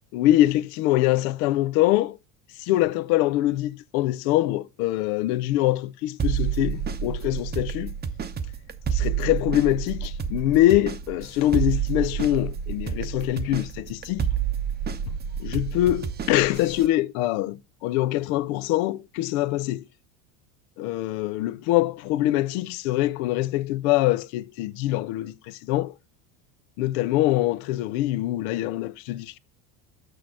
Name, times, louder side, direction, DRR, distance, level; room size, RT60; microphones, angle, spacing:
voice 1, 0.1-2.2 2.6-7.9 8.9-14.3 15.4-19.9 20.8-25.9 26.8-29.4, left 15 dB, 70° left, 0.7 m, -24 dB
sound 1, 6.2-16.9, right 8 dB, 20° right, 0.8 m, -29 dB
6.4 x 6.4 x 4.7 m
supercardioid pair, 100°, 44 cm